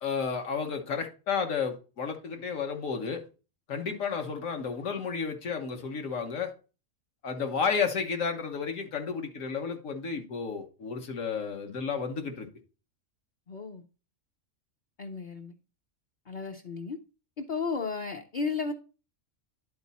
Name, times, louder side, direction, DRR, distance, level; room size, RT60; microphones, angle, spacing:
voice 1, 0.0-3.2 3.7-6.5 7.2-12.5, left 5 dB, 80° left, 1.5 m, -32 dB
voice 2, 13.5-13.8 15.0-15.5 16.3-17.0 17.4-18.7, left 4 dB, 50° left, 0.6 m, -34 dB
10.5 x 4.2 x 4.1 m
omnidirectional pair, 1.3 m